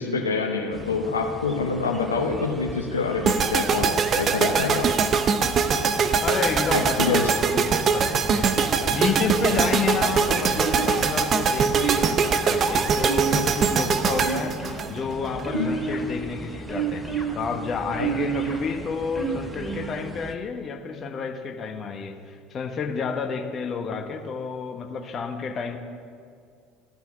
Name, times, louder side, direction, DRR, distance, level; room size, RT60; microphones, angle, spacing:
voice 1, 0.0-4.9 6.7-7.3 15.5-15.7, left 4 dB, 90° left, 3 dB, 0.8 m, -26 dB
sound 1, 0.7-20.4, right 1 dB, 20° right, 1.0 m, -40 dB
sound 2, 3.2-15.4, right 5 dB, 40° right, 0.7 m, -22 dB
voice 2, 6.2-17.1 17.3-25.8, left 5 dB, 40° left, 6 dB, 1.1 m, -30 dB
sound 3, 10.6-11.2 11.7-12.3 13.0-13.7 14.1-14.8 15.4-16.1 16.7-17.3 17.9-18.6 19.1-19.8, right 6 dB, 5° left, 2.9 m, -29 dB
13.0 x 5.8 x 7.2 m, 2.2 s
hypercardioid pair, 65°, 0 cm